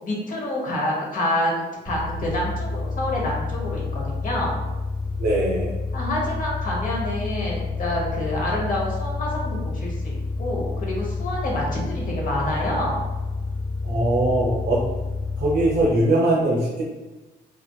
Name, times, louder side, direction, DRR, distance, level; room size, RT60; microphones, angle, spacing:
voice 1, 0.0-4.5 5.9-13.0, left 1 dB, 50° left, -3 dB, 0.9 m, -27 dB
sound 1, 1.9-15.8, left 3 dB, 5° right, 1.1 m, -29 dB
voice 2, 5.2-5.7 13.8-14.8 15.4-16.8, right 1 dB, 55° right, -3 dB, 0.6 m, -21 dB
2.4 x 2.4 x 2.2 m, 1.1 s
cardioid pair, 75°, 18 cm